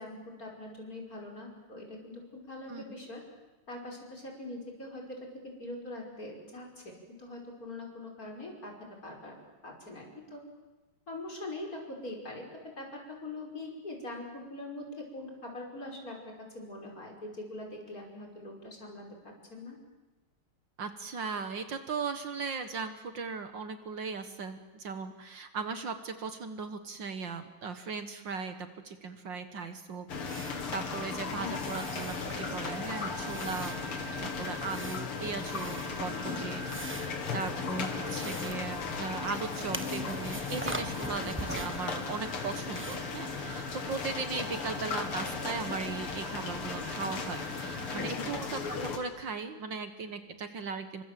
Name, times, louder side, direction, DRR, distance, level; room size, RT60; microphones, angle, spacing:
voice 1, 0.0-3.2 3.7-6.9 7.2-8.7 9.0-9.4 9.6-10.4 11.1-12.5 12.8-19.8 31.4-31.9 47.9-48.5, left 2 dB, 40° left, 1 dB, 6.0 m, -43 dB
voice 2, 20.8-33.8 34.2-51.0, right 5 dB, 60° right, 9 dB, 2.0 m, -38 dB
sound 1, 30.1-49.0, left 4 dB, 85° left, 3.3 m, -36 dB
sound 2, 30.2-43.4, right 1 dB, 10° right, 0.7 m, -44 dB
29.0 x 24.5 x 7.6 m, 1.2 s
omnidirectional pair, 2.4 m